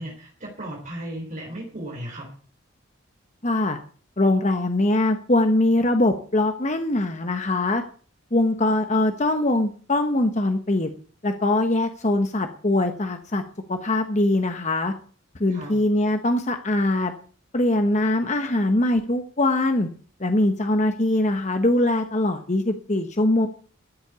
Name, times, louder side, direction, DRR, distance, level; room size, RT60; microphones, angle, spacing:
voice 1, 0.0-2.3 15.5-15.7, right 1 dB, 40° right, -1 dB, 3.9 m, -35 dB
voice 2, 3.4-3.8 4.2-7.8 8.3-10.9 11.2-13.4 13.7-14.9 15.4-17.1 17.5-19.9 20.2-23.5, left 1 dB, 35° left, 6 dB, 1.1 m, -22 dB
13.5 x 8.0 x 8.1 m, 0.42 s
head